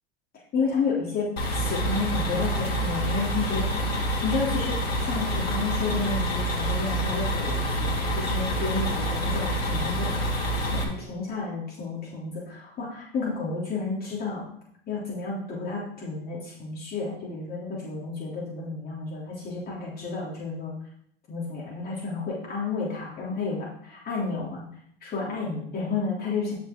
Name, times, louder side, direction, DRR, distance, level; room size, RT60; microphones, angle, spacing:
voice 1, 0.5-10.2 10.6-14.5 14.9-20.7 21.3-24.7 25.0-26.5, left 4 dB, 30° left, -5 dB, 3.3 m, -31 dB
sound 1, 1.4-10.8, equal, 80° left, 2.6 m, -27 dB
11.0 x 5.5 x 3.9 m, 0.68 s
hypercardioid pair, 95°, 30 cm